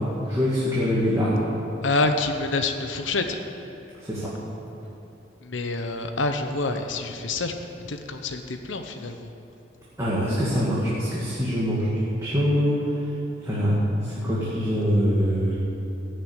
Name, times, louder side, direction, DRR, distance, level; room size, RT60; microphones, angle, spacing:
voice 1, 0.3-1.4 4.0-4.3 10.0-11.9 12.2-12.8 13.4-13.8 14.0-15.6, equal, 15° right, -9 dB, 2.3 m, -24 dB
voice 2, 1.8-3.4 5.4-7.5 7.8-9.3, left 3 dB, 85° left, 6 dB, 0.9 m, -27 dB
16.0 x 6.8 x 9.1 m, 3.0 s
head